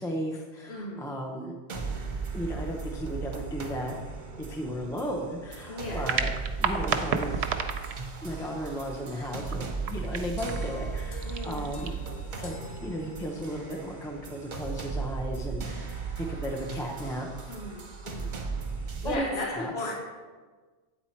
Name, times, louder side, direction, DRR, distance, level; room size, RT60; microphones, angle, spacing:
voice 1, 0.0-1.6 2.3-4.0 4.4-6.3 6.6-7.5 8.2-12.0 12.3-17.5 19.0-19.9, equal, 5° left, 1 dB, 0.5 m, -35 dB
voice 2, 0.7-1.0 5.7-6.0 11.2-11.7 17.5-18.3 19.0-19.9, left 2 dB, 70° left, -1 dB, 1.1 m, -36 dB
sound 1, 1.7-19.1, right 4 dB, 50° right, 0.9 m, -36 dB
sound 2, 5.9-12.8, right 6 dB, 90° right, 0.9 m, -35 dB
sound 3, 10.4-13.7, left 2 dB, 30° left, 0.8 m, -49 dB
8.7 x 4.3 x 4.4 m, 1.4 s
omnidirectional pair, 1.1 m